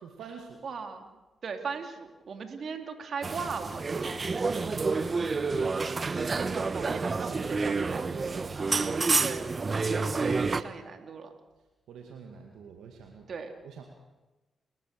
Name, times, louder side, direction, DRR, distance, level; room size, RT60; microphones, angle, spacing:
voice 1, 0.0-0.6 4.5-5.8 7.2-9.8 11.9-13.3 13.6-13.8, right 6 dB, 80° right, 2 dB, 2.1 m, -47 dB
voice 2, 0.6-1.2 1.4-4.2 6.3-8.5 9.2-9.5 10.2-11.3 13.3-13.5, right 5 dB, 60° right, 5 dB, 2.8 m, -38 dB
sound 1, 3.2-10.6, right 4 dB, 45° right, 1.0 m, -29 dB
29.5 x 14.0 x 6.8 m, 1.1 s
hypercardioid pair, 45°, 0 cm